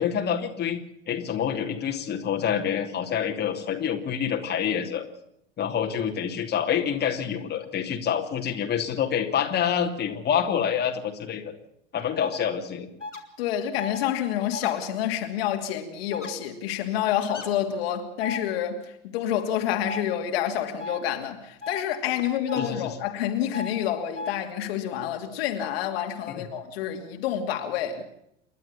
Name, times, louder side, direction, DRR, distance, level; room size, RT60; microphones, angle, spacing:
voice 1, 0.0-5.0 5.6-11.4 11.9-12.9 22.6-22.9 26.3-26.5, left 8 dB, 30° left, 2.8 m, -27 dB
sound 1, 12.2-12.4 13.0-13.2 13.8-14.0 14.5-14.7 16.1-16.3 17.3-17.5 18.2-18.4 19.8-20.0 20.8-21.0 21.6-21.8 22.5-22.7 23.5-23.7 24.2-24.3, left 2 dB, 85° left, 2.9 m, -35 dB
voice 2, 13.4-18.8 19.1-28.0, left 10 dB, 55° left, 2.8 m, -28 dB
29.0 x 12.0 x 8.6 m
figure-of-eight pair, 80°, 35 cm